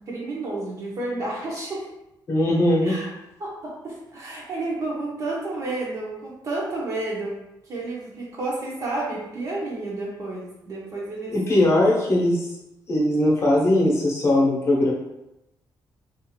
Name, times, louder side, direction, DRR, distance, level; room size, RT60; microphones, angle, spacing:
voice 1, 0.0-1.9 2.8-3.1 3.4-7.4 7.6-11.3, right 2 dB, 45° right, -4 dB, 0.6 m, -31 dB
voice 2, 2.3-2.9 11.3-12.5 12.9-14.9, left 1 dB, 35° left, -4 dB, 0.8 m, -20 dB
2.4 x 2.4 x 2.8 m, 0.89 s
wide cardioid pair, 170°, 8 cm